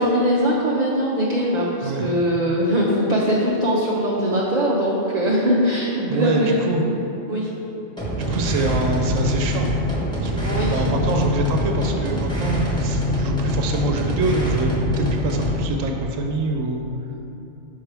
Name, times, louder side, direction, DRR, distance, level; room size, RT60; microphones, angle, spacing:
voice 1, 0.0-6.6 7.3-7.5 10.4-10.8, equal, 45° right, -5 dB, 0.6 m, -21 dB
voice 2, 1.8-2.1 6.1-6.8 8.2-9.7 10.2-14.7 15.0-16.8, right 2 dB, 80° right, 2 dB, 1.0 m, -25 dB
sound 1, 8.0-15.7, left 1 dB, 5° left, 1.0 m, -23 dB
5.8 x 5.6 x 3.4 m, 2.9 s
omnidirectional pair, 1.3 m